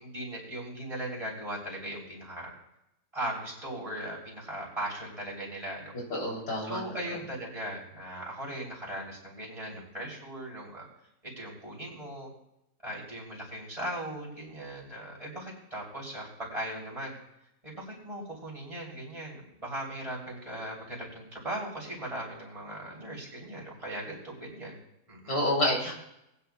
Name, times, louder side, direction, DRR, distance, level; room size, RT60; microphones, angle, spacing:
voice 1, 0.0-2.5 3.1-5.9 6.6-10.9 11.4-12.3 12.8-17.2 17.6-24.8 25.1-25.4, right 1 dB, 20° right, -5 dB, 3.2 m, -38 dB
voice 2, 6.1-6.8 25.3-25.9, left 1 dB, 80° left, -3 dB, 3.7 m, -28 dB
19.5 x 9.7 x 2.3 m, 0.84 s
omnidirectional pair, 1.6 m